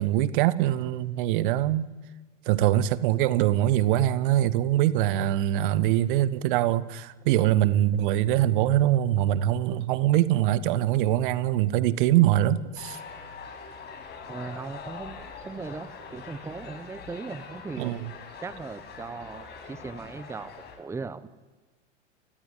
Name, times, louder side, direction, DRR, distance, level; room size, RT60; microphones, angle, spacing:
voice 1, 0.0-1.9 2.5-13.0 17.8-18.1, right 13 dB, 45° right, 1.2 m, -23 dB
sound 1, 12.8-20.8, left 5 dB, 30° left, 5.9 m, -43 dB
voice 2, 14.3-17.9 18.4-21.3, right 4 dB, 5° right, 1.0 m, -38 dB
29.0 x 17.5 x 9.4 m
figure-of-eight pair, 95°, 36 cm